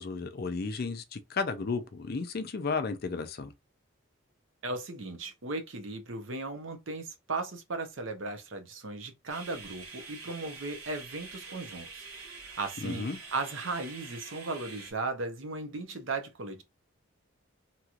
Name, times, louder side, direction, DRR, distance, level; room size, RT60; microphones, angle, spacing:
voice 1, 0.0-3.5 12.8-13.2, left 4 dB, 45° left, 0.4 m, -33 dB
voice 2, 4.6-16.6, right 3 dB, 65° right, 0.7 m, -37 dB
sound 1, 9.3-14.9, right 4 dB, 80° right, 1.0 m, -46 dB
2.9 x 2.9 x 2.4 m
head